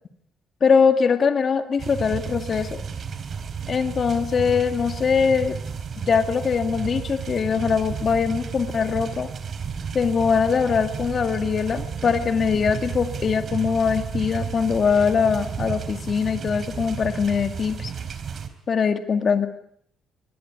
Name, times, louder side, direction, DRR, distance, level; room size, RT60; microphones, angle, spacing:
voice 1, 0.6-2.7 3.7-5.6 6.1-9.3 9.9-17.9 18.7-19.5, left 6 dB, 45° left, 7 dB, 2.2 m, -22 dB
sound 1, 1.8-18.5, right 6 dB, 55° right, 4.1 m, -32 dB
25.0 x 20.5 x 9.9 m, 0.71 s
cardioid pair, 90°, 0 cm